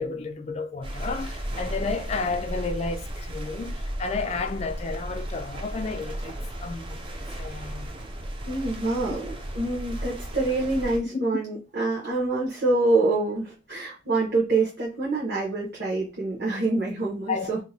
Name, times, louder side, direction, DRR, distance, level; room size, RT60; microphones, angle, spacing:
voice 1, 0.0-7.9 11.1-11.3 17.3-17.6, left 4 dB, 35° left, 0.4 m, -32 dB
sound 1, 0.8-11.0, right 1 dB, 30° right, 0.5 m, -35 dB
voice 2, 8.4-9.3 9.5-17.6, right 2 dB, 55° right, 1.0 m, -26 dB
2.8 x 2.2 x 4.0 m
head